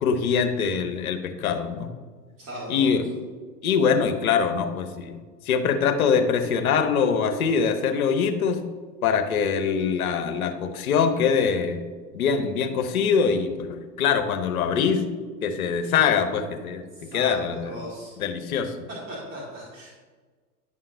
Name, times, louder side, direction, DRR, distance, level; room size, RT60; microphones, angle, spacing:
voice 1, 0.0-1.9 2.7-3.1 3.6-5.2 5.5-8.6 9.0-11.8 12.1-15.0 15.4-17.8 18.2-18.9, left 6 dB, 60° left, 7 dB, 1.0 m, -23 dB
voice 2, 2.4-2.9 16.9-18.1 19.1-19.9, right 1 dB, 35° right, -5 dB, 1.9 m, -37 dB
9.8 x 5.6 x 2.7 m, 1.4 s
figure-of-eight pair, 105°, 49 cm